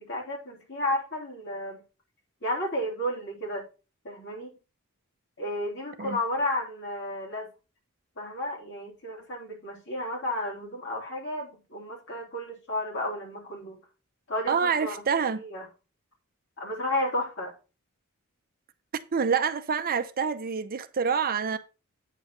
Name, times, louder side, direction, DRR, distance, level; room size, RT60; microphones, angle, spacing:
voice 1, 0.0-1.8 2.4-3.7 4.0-4.5 5.4-7.5 8.2-13.8 14.3-15.1 15.4-15.6 16.6-17.5, left 1 dB, 60° left, 3.5 m, -32 dB
voice 2, 14.5-15.4 19.1-21.6, right 6 dB, 45° right, 0.6 m, -27 dB
9.0 x 3.9 x 6.3 m
head